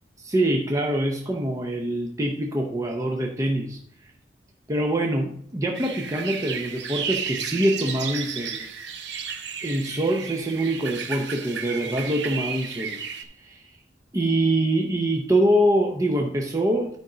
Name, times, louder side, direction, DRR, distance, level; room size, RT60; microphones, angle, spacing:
voice 1, 0.2-3.8 4.7-8.6 9.6-13.0 13.4-13.7 14.1-16.9, right 1 dB, 20° right, 1 dB, 0.7 m, -24 dB
sound 1, 5.7-13.2, right 6 dB, 75° right, 0.8 m, -33 dB
10.0 x 5.2 x 3.9 m, 0.67 s
head